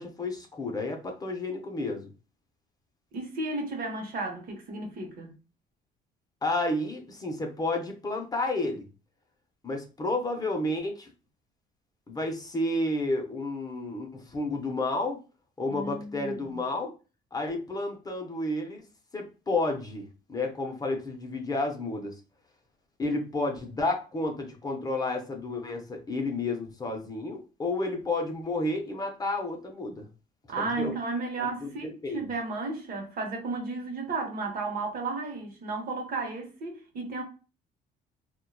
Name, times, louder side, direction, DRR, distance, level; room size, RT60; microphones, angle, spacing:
voice 1, 0.0-2.1 6.4-8.9 9.6-11.1 12.1-15.2 15.6-16.9 17.3-18.8 19.1-22.2 23.0-30.1 30.6-30.9 31.4-31.5 31.8-32.3, left 2 dB, 20° left, 0.6 m, -31 dB
voice 2, 3.1-5.3 15.7-16.6 30.5-37.2, right 3 dB, 55° right, 0.8 m, -33 dB
2.7 x 2.2 x 2.2 m
cardioid pair, 110°, 17 cm